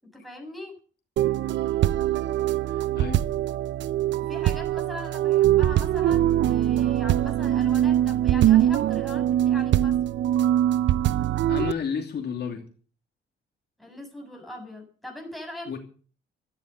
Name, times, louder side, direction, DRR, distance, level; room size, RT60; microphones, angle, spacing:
voice 1, 0.0-0.8 4.1-10.0 13.8-15.8, left 1 dB, ahead, 2 dB, 7.0 m, -41 dB
sound 1, 1.2-11.7, right 12 dB, 70° right, 0.7 m, -22 dB
voice 2, 2.7-3.3 11.5-12.7 15.7-15.8, left 6 dB, 55° left, 4 dB, 2.8 m, -31 dB
14.0 x 11.5 x 6.6 m, 0.40 s
cardioid pair, 90°, 20 cm